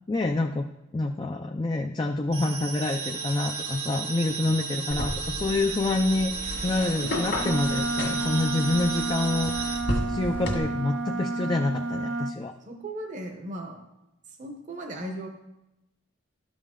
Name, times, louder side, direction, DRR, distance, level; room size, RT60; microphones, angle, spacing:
voice 1, 0.1-0.7 0.9-6.3 6.6-9.8 10.1-12.5, left 2 dB, 20° left, 4 dB, 0.3 m, -27 dB
sound 1, 2.3-9.8, right 5 dB, 85° right, 1.8 m, -34 dB
sound 2, 4.9-10.6, left 1 dB, 60° left, 1.6 m, -33 dB
Wind instrument woodwind instrument, 7.4-12.4, right 2 dB, 60° right, 0.5 m, -30 dB
voice 2, 12.7-13.8 14.4-15.3, right 1 dB, 40° right, 3 dB, 0.8 m, -36 dB
12.5 x 5.2 x 3.7 m, 0.92 s
head